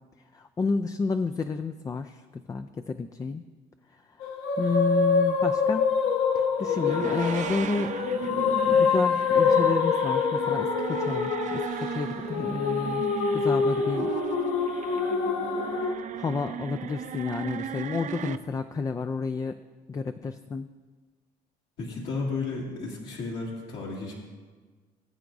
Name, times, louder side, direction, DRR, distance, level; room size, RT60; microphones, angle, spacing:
voice 1, 0.3-3.4 4.6-5.9 6.3-13.1 13.3-14.1 16.1-19.6 19.9-20.7, left 4 dB, 20° left, 8 dB, 0.3 m, -31 dB
sound 1, 4.2-15.9, left 5 dB, 85° left, 1.0 m, -25 dB
sound 2, 6.6-18.4, right 8 dB, 45° right, 0.5 m, -36 dB
voice 2, 21.8-24.1, left 3 dB, 70° left, -5 dB, 2.1 m, -33 dB
19.5 x 8.2 x 2.6 m, 1.4 s
cardioid pair, 110°, 17 cm